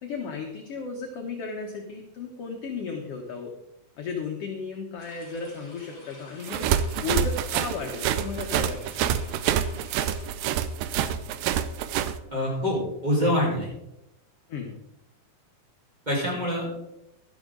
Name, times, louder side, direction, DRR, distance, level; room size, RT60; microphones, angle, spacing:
voice 1, 0.0-3.5 4.0-6.7 7.0-9.2 14.5-14.8, left 5 dB, 60° left, 1 dB, 1.7 m, -34 dB
sound 1, 5.0-10.3, left 1 dB, 30° left, 5.5 m, -50 dB
sound 2, 6.4-12.1, right 10 dB, 80° right, 2.4 m, -26 dB
voice 2, 12.3-13.7 16.1-16.7, equal, 10° right, -4 dB, 4.3 m, -25 dB
12.5 x 12.0 x 3.8 m, 0.84 s
omnidirectional pair, 4.0 m